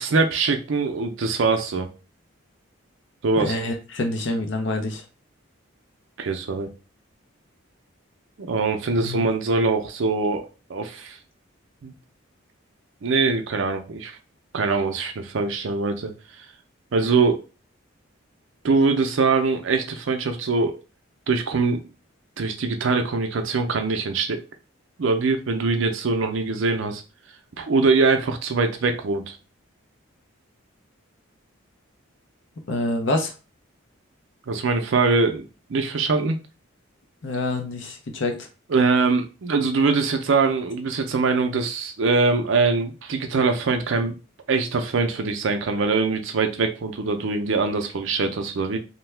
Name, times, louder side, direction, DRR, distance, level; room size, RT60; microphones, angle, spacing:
voice 1, 0.0-1.9 3.2-3.6 6.2-6.7 8.4-11.2 11.8-11.9 13.0-14.2 14.5-16.1 16.4-16.5 16.9-17.4 18.6-20.8 21.3-21.9 22.4-24.4 25.0-27.0 27.6-29.4 34.5-35.4 35.7-36.4 38.7-44.2 44.5-48.8, right 4 dB, 65° right, 6 dB, 0.5 m, -23 dB
voice 2, 3.4-5.0 9.0-9.2 32.7-33.3 37.2-38.5, left 2 dB, 60° left, 4 dB, 0.6 m, -26 dB
2.7 x 2.2 x 3.2 m, 0.32 s
head